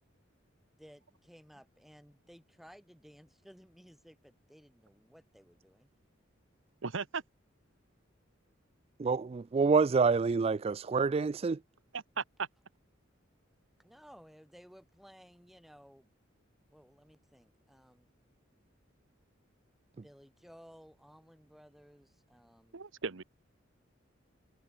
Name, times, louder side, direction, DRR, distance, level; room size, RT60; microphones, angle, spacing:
voice 1, 0.8-5.9 13.8-16.1 16.7-18.1 20.0-22.8, equal, ahead, 3.8 m, -57 dB
voice 2, 6.8-7.2 11.9-12.5 22.7-23.2, right 5 dB, 75° right, 1.0 m, -36 dB
voice 3, 9.0-11.6, right 4 dB, 30° right, 0.3 m, -27 dB
head